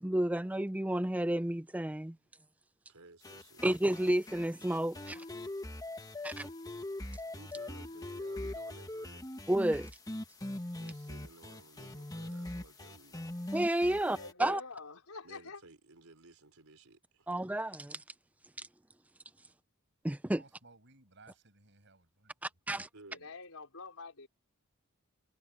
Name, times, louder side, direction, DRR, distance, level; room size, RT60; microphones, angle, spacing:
voice 1, 0.0-2.1 3.6-5.2 6.2-6.5 9.5-9.9 13.5-14.6 17.3-18.0 20.0-20.4 22.7-22.9, right 1 dB, 5° right, 0.4 m, -31 dB
voice 2, 2.9-3.6 7.3-9.3 10.7-13.5 15.2-17.3 22.9-23.3, right 2 dB, 80° right, 3.8 m, -57 dB
sound 1, 3.2-14.3, left 1 dB, 15° left, 1.3 m, -42 dB
voice 3, 13.9-15.6 23.1-24.3, left 4 dB, 90° left, 4.0 m, -46 dB
voice 4, 20.3-22.3, right 3 dB, 55° right, 6.8 m, -60 dB
head